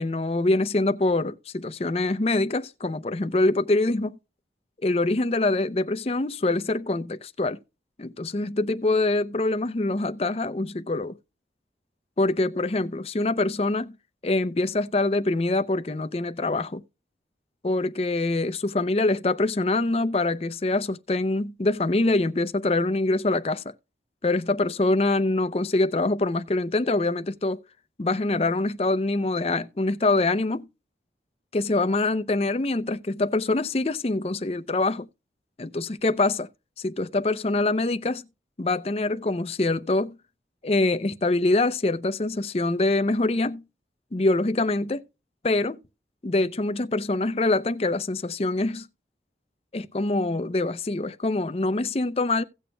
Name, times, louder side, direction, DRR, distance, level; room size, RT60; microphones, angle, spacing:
voice 1, 0.0-4.2 4.8-7.6 8.0-11.2 12.2-14.0 14.2-16.8 17.6-23.7 24.2-27.6 28.0-30.7 31.5-35.1 35.6-36.5 36.8-38.2 38.6-40.2 40.6-43.6 44.1-45.0 45.4-45.8 46.2-48.9 49.7-52.4, left 2 dB, 35° left, 0.5 m, -24 dB
17.0 x 6.9 x 2.2 m
head